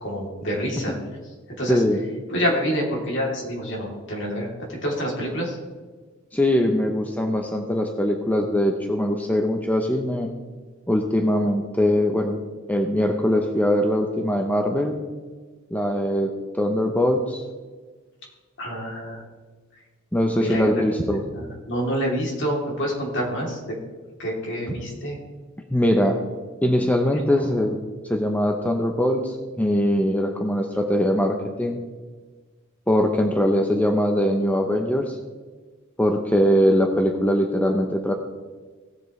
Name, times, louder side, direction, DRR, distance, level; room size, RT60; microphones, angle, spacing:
voice 1, 0.0-1.0 1.6-1.8 2.3-5.6 18.6-19.2 20.4-20.8 21.1-23.7 24.2-25.2, equal, 60° left, -2 dB, 3.2 m, -27 dB
voice 2, 1.7-2.0 6.3-10.3 10.9-12.4 12.7-15.0 15.7-17.4 20.1-21.2 25.7-26.2 26.6-27.8 28.0-31.8 32.9-35.2 36.0-38.1, equal, 10° left, 3 dB, 0.7 m, -22 dB
17.5 x 7.5 x 3.2 m, 1.4 s
head